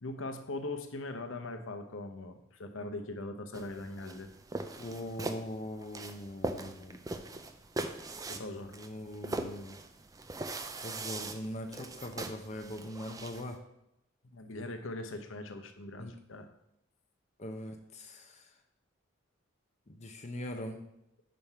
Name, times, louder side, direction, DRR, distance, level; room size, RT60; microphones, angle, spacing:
voice 1, 0.0-4.3 8.3-8.8 14.3-16.5, left 2 dB, 70° left, 7 dB, 0.8 m, -41 dB
sound 1, 3.5-13.6, right 2 dB, 15° right, 0.4 m, -41 dB
voice 2, 4.8-7.0 8.7-9.8 10.8-13.6 16.0-16.1 17.4-18.5 19.9-20.9, left 1 dB, 35° left, 5 dB, 0.6 m, -41 dB
5.7 x 5.2 x 4.5 m, 0.81 s
head